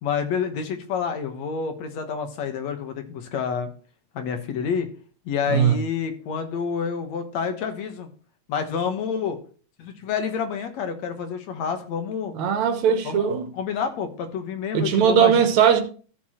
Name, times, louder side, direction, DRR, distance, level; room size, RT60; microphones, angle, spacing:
voice 1, 0.0-3.7 4.1-4.9 5.3-8.1 8.5-9.4 9.8-12.3 13.0-15.5, left 6 dB, 70° left, 2.5 m, -28 dB
voice 2, 12.3-13.5 14.7-15.8, right 8 dB, 75° right, 2.4 m, -19 dB
14.5 x 7.0 x 3.0 m
omnidirectional pair, 3.4 m